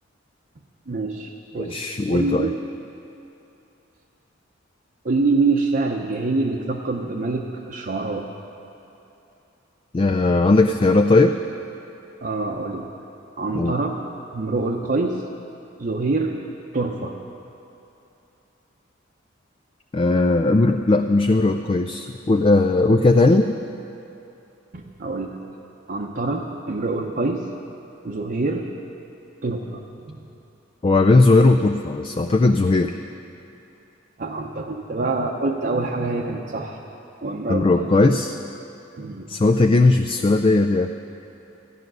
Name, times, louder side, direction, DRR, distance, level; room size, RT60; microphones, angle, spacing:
voice 1, 0.9-1.8 2.1-2.6 5.0-8.3 12.2-12.9 13.4-14.0 14.3-15.2 15.8-16.3 16.7-17.2 24.7-25.4 25.9-27.5 28.0-28.7 29.4-30.2 34.2-36.8 37.2-37.9 39.0-39.3, right 3 dB, 50° right, -1 dB, 0.8 m, -25 dB
voice 2, 1.6-2.5 9.9-11.4 13.5-13.7 19.9-23.5 30.8-32.9 37.5-38.4 39.3-40.9, left 2 dB, 25° left, 6 dB, 0.3 m, -18 dB
14.0 x 10.5 x 6.2 m, 3.0 s
head